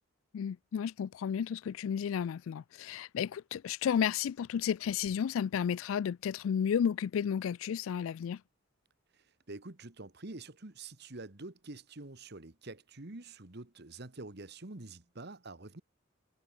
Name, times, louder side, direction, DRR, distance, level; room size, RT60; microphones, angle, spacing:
voice 1, 0.3-8.4, left 8 dB, 85° left, 0.3 m, -32 dB
voice 2, 9.1-15.8, right 2 dB, 55° right, 1.6 m, -47 dB
head